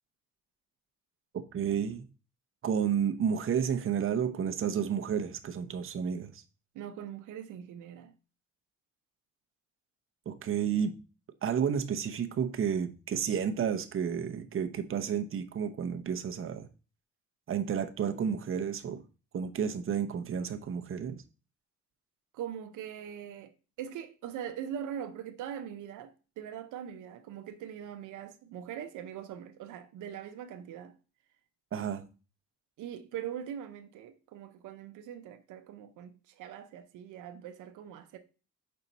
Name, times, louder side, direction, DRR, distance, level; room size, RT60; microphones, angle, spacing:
voice 1, 1.5-2.1 2.6-6.3 10.3-10.9 11.4-16.7 17.5-19.0 19.3-21.2 31.7-32.0, right 7 dB, 45° right, 0.8 m, -31 dB
voice 2, 6.7-8.1 22.3-30.9 32.8-38.2, right 9 dB, 85° right, 0.7 m, -42 dB
5.4 x 4.4 x 4.0 m
cardioid pair, 90°, 30 cm